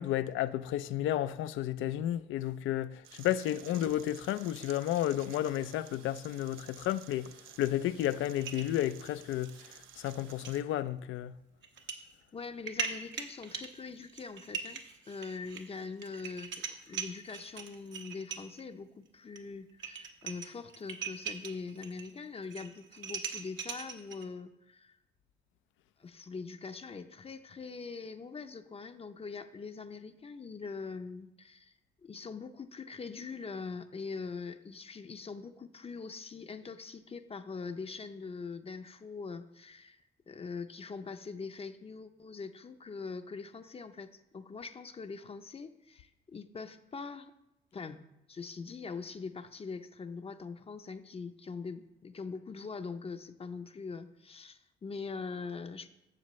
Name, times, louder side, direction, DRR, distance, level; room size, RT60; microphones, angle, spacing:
voice 1, 0.0-7.3 7.6-11.3, left 12 dB, 85° left, 0.4 m, -32 dB
sound 1, 3.0-10.6, right 10 dB, 85° right, 0.5 m, -54 dB
sound 2, 8.3-9.6 9.9-10.1 10.4-10.6 11.6-12.0 12.4-18.6 19.4-19.5 19.7-22.1 22.4-24.3, right 6 dB, 70° right, 1.0 m, -41 dB
voice 2, 12.3-25.0 26.0-31.7 32.0-40.0 40.3-47.3 47.7-48.0 48.3-55.9, left 4 dB, 30° left, 0.6 m, -43 dB
11.5 x 7.3 x 3.1 m
cardioid pair, 90°, 20 cm